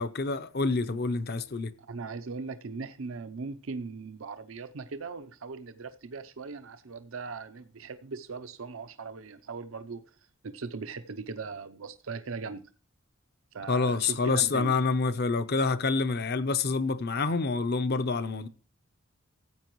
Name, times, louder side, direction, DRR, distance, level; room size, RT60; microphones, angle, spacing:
voice 1, 0.0-1.7 13.7-18.5, left 4 dB, 50° left, 0.7 m, -27 dB
voice 2, 1.9-10.0 10.4-12.6 13.5-14.8, right 4 dB, 85° right, 0.6 m, -39 dB
15.0 x 8.5 x 3.1 m
head